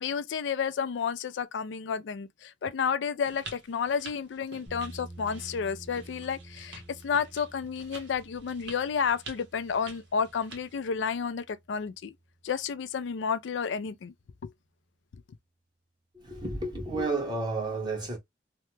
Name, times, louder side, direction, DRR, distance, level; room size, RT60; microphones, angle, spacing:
voice 1, 0.0-12.1 12.4-14.1 14.4-14.5, left 6 dB, 80° left, 0.4 m, -31 dB
sound 1, 3.3-10.8, right 3 dB, 75° right, 1.1 m, -49 dB
sound 2, 4.7-12.8, right 1 dB, 10° left, 0.9 m, -50 dB
voice 2, 16.1-18.2, right 3 dB, 25° right, 1.1 m, -31 dB
2.8 x 2.1 x 3.1 m
head